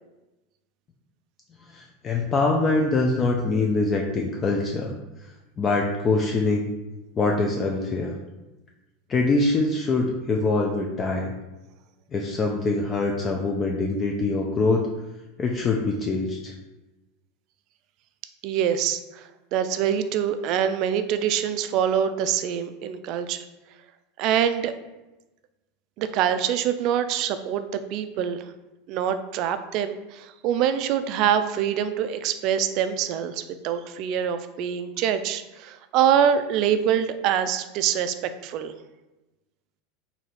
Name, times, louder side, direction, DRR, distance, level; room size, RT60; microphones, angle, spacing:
voice 1, 1.7-4.9 5.6-6.7 7.2-8.1 9.1-11.4 12.1-14.9 15.4-16.5, left 3 dB, 30° left, 1 dB, 0.4 m, -24 dB
voice 2, 18.4-23.4 24.2-24.7 26.0-28.5 28.9-38.7, right 9 dB, 55° right, 10 dB, 0.3 m, -25 dB
3.2 x 2.7 x 4.1 m, 1.0 s
supercardioid pair, 120°, 0 cm